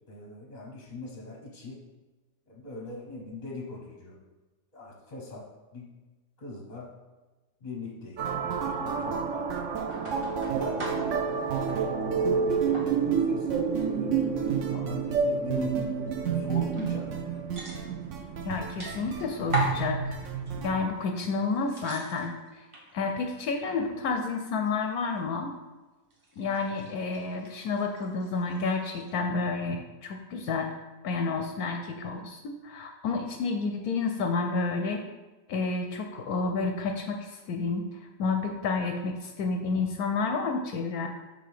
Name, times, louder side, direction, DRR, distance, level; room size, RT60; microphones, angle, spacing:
voice 1, 0.1-1.8 2.5-4.2 4.7-5.5 5.7-5.9 6.4-6.9 7.6-9.8 10.4-11.8 12.4-15.7 16.3-17.9, left 2 dB, 35° left, -1 dB, 0.7 m, -41 dB
sound 1, 8.2-20.7, right 6 dB, 75° right, 0.6 m, -29 dB
sound 2, 9.9-11.9 12.2-13.4 13.7-13.9 14.4-15.6 16.1-16.2 16.6-17.2 17.5-18.3 18.8-19.8 20.4-20.9 21.3-22.9 23.3-24.2 24.4-25.3 26.1-29.2, equal, 25° right, 0.8 m, -40 dB
voice 2, 18.4-20.2 20.6-22.7 22.9-25.5 26.4-30.7 31.0-35.0 35.5-41.1, left 4 dB, 70° left, 4 dB, 0.9 m, -30 dB
6.7 x 3.7 x 5.1 m, 1.2 s
omnidirectional pair, 2.0 m